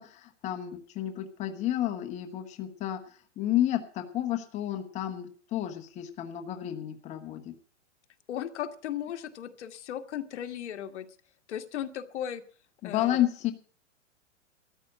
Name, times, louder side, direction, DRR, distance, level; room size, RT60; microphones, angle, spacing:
voice 1, 0.0-3.0 3.4-7.5 12.8-13.5, left 12 dB, 20° left, 5 dB, 1.2 m, -31 dB
voice 2, 8.3-11.0 11.5-12.4 12.8-13.2, left 10 dB, 70° left, 8 dB, 1.7 m, -36 dB
14.0 x 8.5 x 8.6 m, 0.43 s
supercardioid pair, 160°, 37 cm